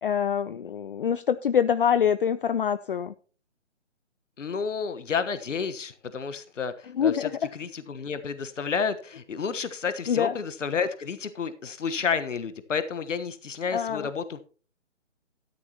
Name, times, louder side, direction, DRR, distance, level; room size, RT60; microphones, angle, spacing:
voice 1, 0.0-3.1 6.9-7.5 10.1-10.3 13.7-14.1, left 8 dB, 45° left, 14 dB, 0.5 m, -25 dB
voice 2, 4.4-14.4, left 6 dB, 80° left, 12 dB, 1.3 m, -31 dB
13.0 x 9.9 x 2.9 m, 0.38 s
hypercardioid pair, 155°, 37 cm